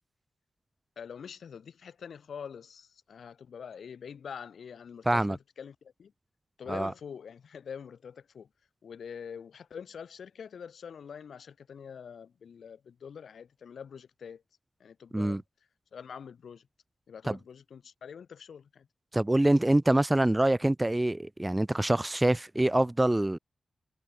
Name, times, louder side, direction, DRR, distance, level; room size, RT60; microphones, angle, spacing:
voice 1, 1.0-6.1 6.6-8.5 8.8-14.4 14.8-15.4 15.9-16.6 17.1-18.9, left 7 dB, 90° left, 2.9 m, -45 dB
voice 2, 5.1-5.4 6.7-6.9 15.1-15.4 17.3-17.4 19.1-23.4, right 1 dB, 15° right, 0.4 m, -25 dB
wide cardioid pair, 120°, 0 cm